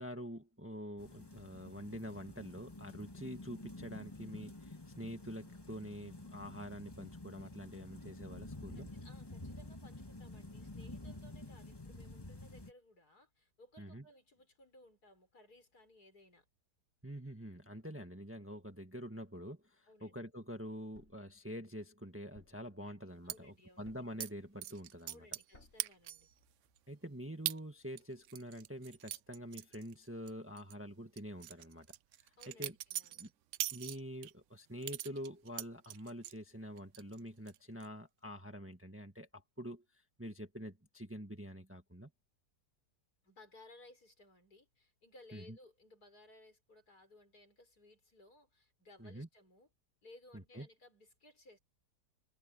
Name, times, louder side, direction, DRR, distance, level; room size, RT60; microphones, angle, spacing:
voice 1, 0.0-8.9 13.8-14.0 17.0-25.3 26.9-31.9 32.2-32.7 33.2-33.3 33.7-39.8 40.2-42.1 45.3-45.6 49.0-49.3 50.3-50.7, equal, 10° right, 1.6 m, -46 dB
sound 1, 1.0-12.7, left 2 dB, 15° left, 1.9 m, -50 dB
voice 2, 8.7-16.5 19.9-20.1 22.8-23.9 25.1-26.3 32.4-33.3 43.2-49.7 50.0-51.6, left 1 dB, 65° left, 6.2 m, -61 dB
Thump thud, 20.9-21.3 22.3-22.7 23.8-24.2 25.5-25.9, left 1 dB, 40° left, 5.6 m, -62 dB
sound 2, 23.3-23.4 24.2-24.3 24.6-25.5 25.8-26.3 26.8-26.9 27.5-27.6 28.0-30.3 30.6-30.7 31.2-34.3 34.8-36.4 36.8-37.2 37.5-37.9, right 13 dB, 70° right, 0.7 m, -41 dB
omnidirectional pair, 1.8 m